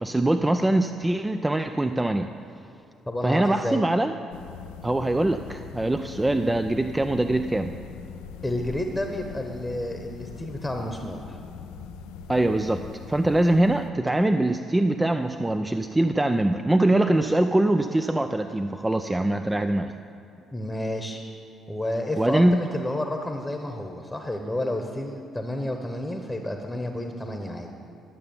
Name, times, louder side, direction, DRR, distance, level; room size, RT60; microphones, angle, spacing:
voice 1, 0.0-2.3 3.2-4.1 4.8-7.8 12.3-19.9 22.2-22.6, right 1 dB, 15° right, 8 dB, 0.4 m, -23 dB
voice 2, 3.1-3.8 8.4-11.4 20.5-21.2 21.7-27.7, left 1 dB, 10° left, 4 dB, 1.1 m, -30 dB
sound 1, 4.3-13.9, left 6 dB, 75° left, 0.4 m, -41 dB
12.0 x 6.8 x 7.1 m, 2.7 s
hypercardioid pair, 45°, 0 cm